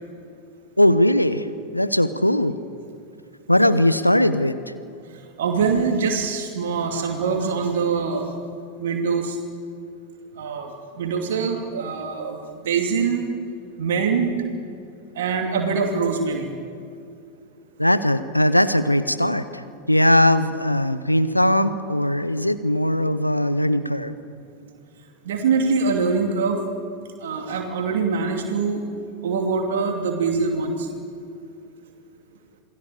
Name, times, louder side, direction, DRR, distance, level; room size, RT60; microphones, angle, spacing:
voice 1, 0.8-1.5 1.7-2.5 3.5-4.6 17.8-24.1, left 1 dB, 90° left, 12 dB, 1.0 m, -19 dB
voice 2, 5.4-8.3 8.8-9.4 10.4-10.7 11.0-12.4 12.6-13.2 13.8-14.3 15.2-16.5 25.2-26.6 27.2-28.8 29.2-30.9, right 5 dB, 60° right, 2 dB, 2.6 m, -23 dB
28.5 x 20.0 x 7.1 m, 2.5 s
figure-of-eight pair, 90°, 0 cm